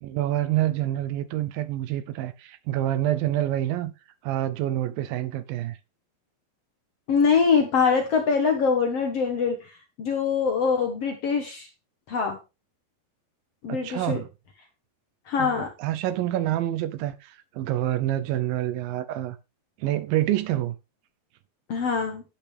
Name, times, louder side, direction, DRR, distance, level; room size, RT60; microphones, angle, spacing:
voice 1, 0.0-3.9 4.2-5.8 13.7-14.3 15.4-19.4 19.8-20.8, right 13 dB, 80° right, 2.3 m, -27 dB
voice 2, 7.1-9.6 10.0-11.7 12.1-12.4 13.6-14.2 15.3-15.7 21.7-22.2, left 5 dB, 55° left, 1.8 m, -23 dB
10.5 x 8.7 x 3.4 m
omnidirectional pair, 4.3 m